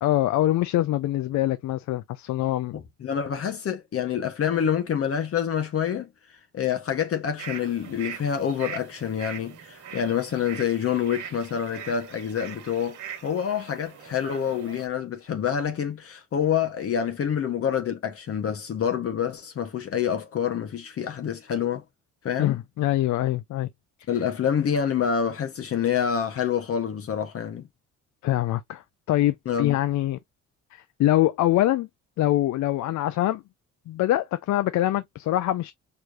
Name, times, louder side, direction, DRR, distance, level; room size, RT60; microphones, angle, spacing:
voice 1, 0.0-2.7 22.4-23.7 28.2-30.2 30.7-31.9 32.2-33.4 33.9-35.7, left 14 dB, 70° left, 0.5 m, -24 dB
voice 2, 3.0-21.8 22.2-22.6 24.1-27.7 29.5-29.8, left 8 dB, 50° left, 0.8 m, -27 dB
sound 1, 7.4-14.9, right 8 dB, 80° right, 1.6 m, -41 dB
4.7 x 3.2 x 2.3 m
cardioid pair, 90°, 30 cm